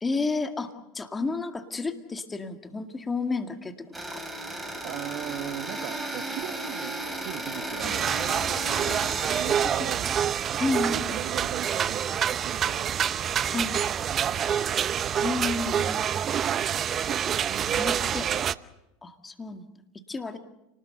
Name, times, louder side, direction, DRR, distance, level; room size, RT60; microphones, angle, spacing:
voice 1, 0.0-4.2 7.8-8.0 8.9-9.0 9.5-10.1 10.6-11.2 13.5-13.8 15.2-16.2 17.8-18.3 19.0-19.6 20.1-20.4, left 3 dB, 15° left, 6 dB, 2.0 m, -32 dB
sound 1, 3.9-9.4, right 1 dB, 5° right, 5.2 m, -34 dB
voice 2, 4.8-12.0 12.4-13.7 14.0-14.4 17.1-17.9, right 13 dB, 55° right, 10 dB, 1.5 m, -40 dB
sound 2, 7.8-18.5, right 9 dB, 35° right, 0.8 m, -27 dB
30.0 x 19.5 x 6.9 m, 0.90 s
hypercardioid pair, 95°, 0 cm